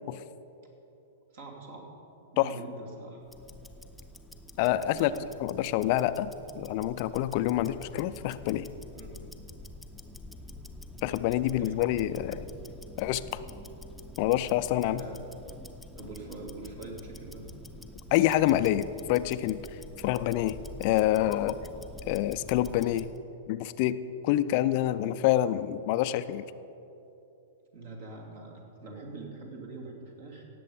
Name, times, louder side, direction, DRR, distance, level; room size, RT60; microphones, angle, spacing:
voice 1, 1.3-1.9 2.3-3.2 4.9-5.3 8.9-9.1 11.5-11.8 15.0-15.2 16.0-17.4 27.7-30.4, right 3 dB, 55° right, 0 dB, 2.6 m, -44 dB
Tick-tock, 3.2-23.2, left 1 dB, ahead, 0.8 m, -47 dB
voice 2, 4.6-5.1 5.4-8.7 11.0-12.5 13.0-13.2 14.2-15.0 18.1-19.6 20.0-21.6 22.1-23.1 23.5-24.0 24.2-26.5, left 13 dB, 45° left, 14 dB, 0.4 m, -27 dB
17.0 x 7.6 x 5.2 m, 2.9 s
figure-of-eight pair, 100°, 0 cm